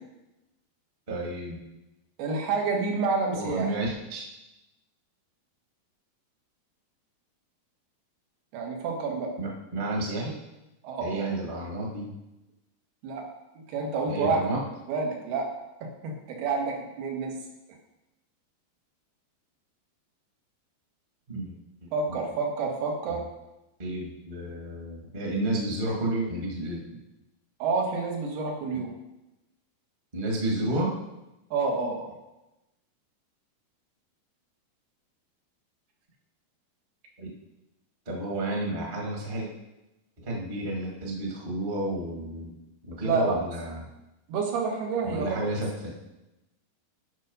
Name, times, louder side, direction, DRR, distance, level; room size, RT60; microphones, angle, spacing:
voice 1, 1.1-1.6 3.3-4.2 9.4-10.4 11.0-12.1 14.1-14.6 21.3-21.5 21.8-22.2 23.8-26.8 30.1-30.9 37.2-37.3 38.0-39.5 40.2-42.5 42.9-43.8 45.0-45.9, right 1 dB, 35° right, -2 dB, 0.8 m, -31 dB
voice 2, 2.2-3.7 8.5-9.3 10.8-11.3 13.0-13.3 13.7-14.4 14.9-15.5 15.8-17.4 21.9-23.2 27.6-28.9 31.5-32.2 42.9-43.4 44.3-45.4, right 4 dB, 85° right, 0 dB, 3.4 m, -28 dB
9.1 x 5.5 x 5.4 m, 0.95 s
omnidirectional pair, 4.4 m